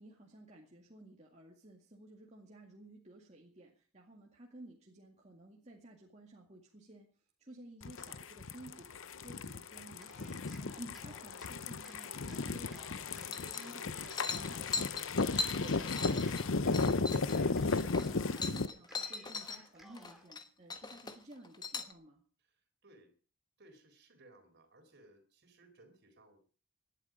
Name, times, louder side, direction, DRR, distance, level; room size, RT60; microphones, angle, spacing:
voice 1, 0.0-7.1 7.4-15.1 15.6-22.2, right 1 dB, 30° right, -1 dB, 2.2 m, -54 dB
sound 1, 7.8-18.7, left 3 dB, 60° left, 0.8 m, -35 dB
Cheering, 10.0-11.5 11.8-13.3 13.6-15.0 15.4-16.8 17.1-18.5 18.9-20.3, right 1 dB, ahead, 2.4 m, -59 dB
sound 2, 13.3-13.8 14.1-19.6 19.9-20.4 20.7-21.9, left 4 dB, 20° left, 1.2 m, -40 dB
voice 2, 22.4-23.1 23.6-26.4, right 2 dB, 50° right, 6 dB, 4.0 m, -62 dB
19.0 x 11.0 x 5.1 m, 0.40 s
head